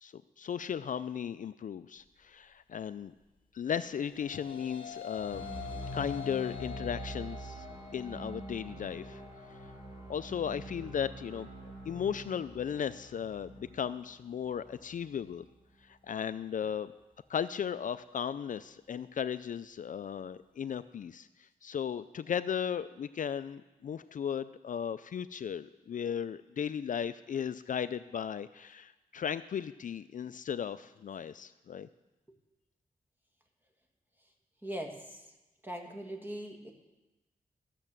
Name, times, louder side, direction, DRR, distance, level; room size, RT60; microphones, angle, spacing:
voice 1, 0.0-3.1 3.5-5.5 5.9-7.7 7.9-9.2 10.1-11.5 11.9-15.5 15.8-16.9 17.3-31.9, left 8 dB, 60° left, 13 dB, 0.4 m, -36 dB
sound 1, 3.8-13.0, left 6 dB, 35° left, 1.5 m, -47 dB
sound 2, 5.1-15.2, equal, 30° right, 5.7 m, -45 dB
voice 2, 34.6-35.2 35.6-36.7, right 1 dB, 15° right, 2 dB, 1.8 m, -40 dB
14.0 x 6.7 x 7.4 m, 1.1 s
wide cardioid pair, 100°, 15 cm